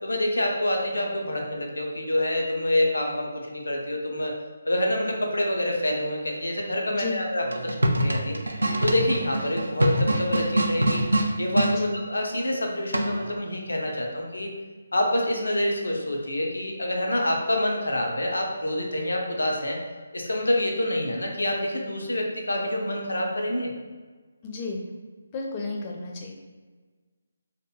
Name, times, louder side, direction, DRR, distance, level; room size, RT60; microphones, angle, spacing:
voice 1, 0.0-4.3 4.6-8.4 8.8-11.0 11.4-14.5 14.9-19.8 20.1-23.7, left 1 dB, 85° left, 0 dB, 0.5 m, -27 dB
voice 2, 6.9-7.2 11.7-12.0 24.4-24.8 25.3-26.3, left 3 dB, 25° left, 0 dB, 0.4 m, -32 dB
sound 1, 7.4-11.8 12.9-13.4, right 1 dB, 85° right, 0.3 m, -24 dB
2.8 x 2.4 x 2.2 m, 1.4 s
figure-of-eight pair, 155°, 0 cm